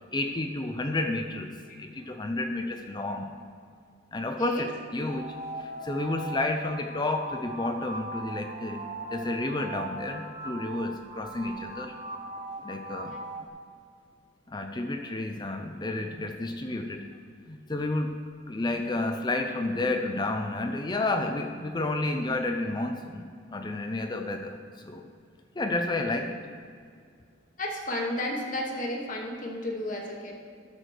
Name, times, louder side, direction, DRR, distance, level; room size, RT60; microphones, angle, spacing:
voice 1, 0.1-1.5 1.8-3.4 4.1-11.9 12.6-13.2 14.5-17.1 17.5-18.2 18.5-25.1 25.6-26.4, left 2 dB, 20° left, 5 dB, 0.5 m, -31 dB
voice 2, 4.2-4.7 13.1-13.2 26.1-26.2 27.6-30.3, left 1 dB, 40° left, 0 dB, 1.3 m, -33 dB
sound 1, 5.1-13.5, right 2 dB, 35° right, 0.8 m, -39 dB
12.5 x 4.9 x 6.5 m, 2.2 s
head